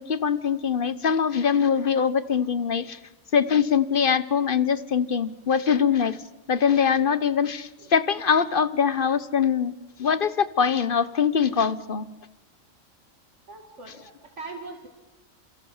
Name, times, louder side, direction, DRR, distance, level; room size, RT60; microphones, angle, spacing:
voice 1, 0.0-3.0 3.3-6.2 6.5-9.7 10.0-12.1, left 7 dB, 45° left, 15 dB, 1.2 m, -23 dB
voice 2, 13.5-14.9, right 3 dB, 60° right, 2 dB, 2.7 m, -40 dB
28.0 x 27.5 x 7.3 m, 1.1 s
omnidirectional pair, 1.4 m